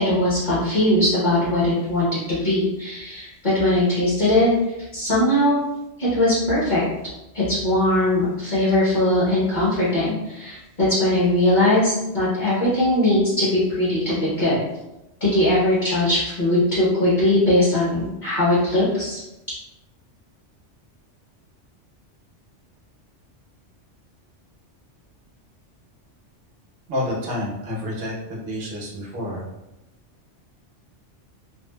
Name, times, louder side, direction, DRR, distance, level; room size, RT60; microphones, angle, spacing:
voice 1, 0.0-4.5 4.9-5.6 6.0-6.8 7.3-14.6 15.2-19.2, left 1 dB, 40° left, -10 dB, 1.1 m, -20 dB
voice 2, 26.9-29.4, left 1 dB, 60° right, -2 dB, 0.9 m, -29 dB
3.2 x 2.4 x 2.2 m, 0.94 s
omnidirectional pair, 1.2 m